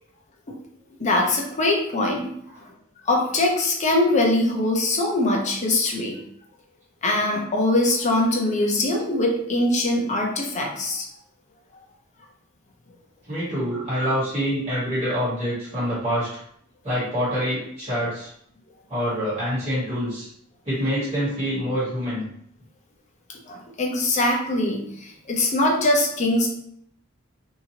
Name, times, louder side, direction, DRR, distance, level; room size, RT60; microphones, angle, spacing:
voice 1, 1.0-2.2 2.6-2.7 3.1-6.2 7.0-11.0 23.5-26.5, left 2 dB, 35° left, 0 dB, 0.6 m, -22 dB
voice 2, 13.3-16.3 16.8-18.3 18.9-20.3 20.6-22.2, equal, 30° right, -10 dB, 1.5 m, -26 dB
2.8 x 2.6 x 2.8 m, 0.70 s
head